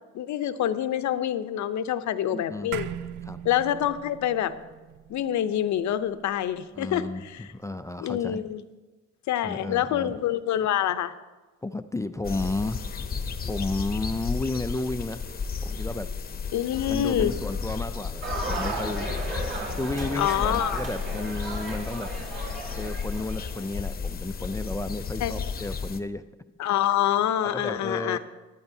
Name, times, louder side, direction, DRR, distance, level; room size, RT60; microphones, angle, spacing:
voice 1, 0.1-2.9 3.4-4.5 5.1-7.5 8.0-8.6 9.3-11.1 16.5-17.3 20.1-20.8 25.2-25.3 26.6-28.2, left 11 dB, 70° left, 12 dB, 0.7 m, -26 dB
voice 2, 2.3-2.7 3.2-3.4 6.7-8.4 9.4-10.2 11.6-12.9 13.5-15.2 15.6-16.1 16.9-19.1 19.7-22.1 22.8-26.2 27.4-28.2, left 2 dB, 10° left, 11 dB, 0.3 m, -32 dB
sound 1, 2.7-7.3, right 10 dB, 80° right, 0.5 m, -40 dB
sound 2, 12.2-26.0, left 5 dB, 30° left, 0.8 m, -33 dB
sound 3, 18.2-23.8, right 2 dB, 40° right, 3.8 m, -35 dB
16.0 x 11.0 x 2.7 m, 1.2 s
cardioid pair, 90°, 30 cm